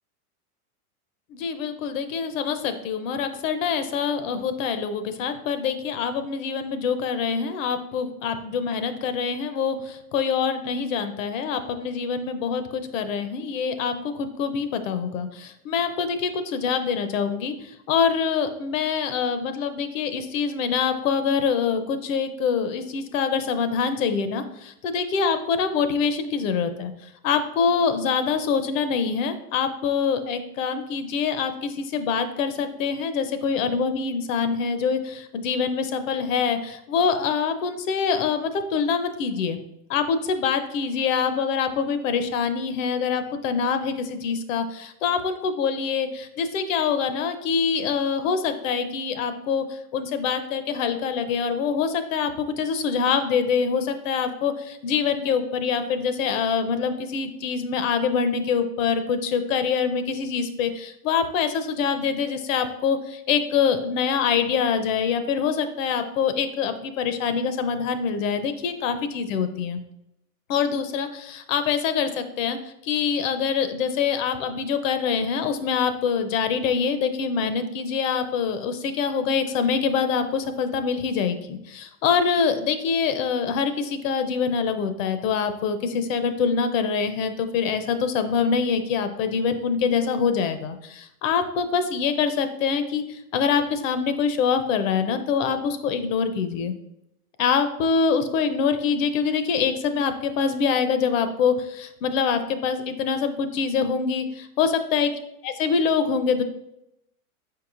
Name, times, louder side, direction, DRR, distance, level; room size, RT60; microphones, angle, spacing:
voice 1, 1.3-26.9 27.2-39.6 39.9-69.8 70.5-96.7 97.4-105.1 105.4-106.4, left 6 dB, 60° left, 9 dB, 0.6 m, -25 dB
4.7 x 4.6 x 2.4 m, 0.82 s
supercardioid pair, 135°, 45 cm